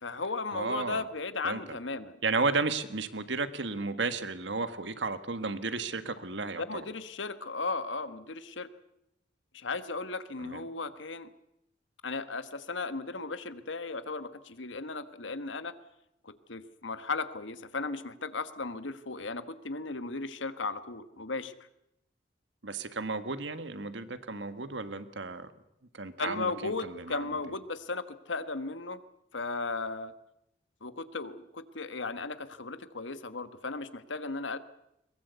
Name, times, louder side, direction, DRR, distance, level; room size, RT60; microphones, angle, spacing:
voice 1, 0.0-2.2 6.6-8.7 9.5-11.3 12.0-15.7 16.2-21.5 26.2-29.0 29.3-30.1 30.8-34.6, left 3 dB, 90° left, 12 dB, 1.4 m, -36 dB
voice 2, 0.5-1.0 1.4-1.8 2.2-6.8 10.4-10.6 22.6-25.5 25.9-27.4, right 3 dB, 70° right, 11 dB, 1.5 m, -33 dB
22.0 x 21.0 x 8.1 m, 0.84 s
head